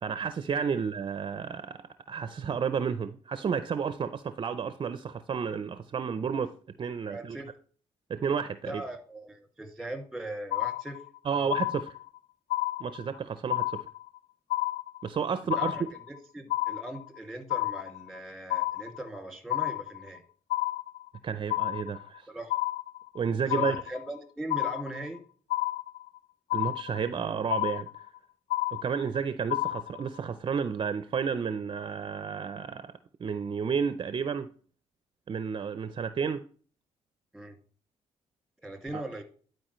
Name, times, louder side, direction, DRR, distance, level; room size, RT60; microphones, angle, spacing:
voice 1, 0.0-6.5 6.8-7.4 8.1-8.8 11.3-11.9 12.8-13.8 15.0-15.9 21.2-22.3 23.1-23.8 26.5-27.9 28.7-32.9 33.2-34.5 35.3-36.4 38.9-39.0, right 6 dB, 45° right, 0.5 m, -31 dB
voice 2, 7.1-7.5 8.6-11.0 11.3-11.4 15.5-20.2 22.3-22.5 23.5-25.2 37.3-37.6 38.6-39.2, right 1 dB, ahead, 2.1 m, -40 dB
sound 1, 10.5-11.2 11.5-12.2 12.5-13.2 13.5-14.2 14.5-15.2 15.5-16.2 16.5-17.2 17.5-18.2 18.5-19.2 19.5-20.2 20.5-21.2 21.5-22.2 22.5-23.2 23.5-24.2 24.5-25.2 25.5-26.2 26.5-27.2 27.5-28.2 28.5-29.2 29.5-30.2, left 17 dB, 90° left, 0.4 m, -30 dB
11.5 x 4.7 x 3.1 m
cardioid pair, 85°, 12 cm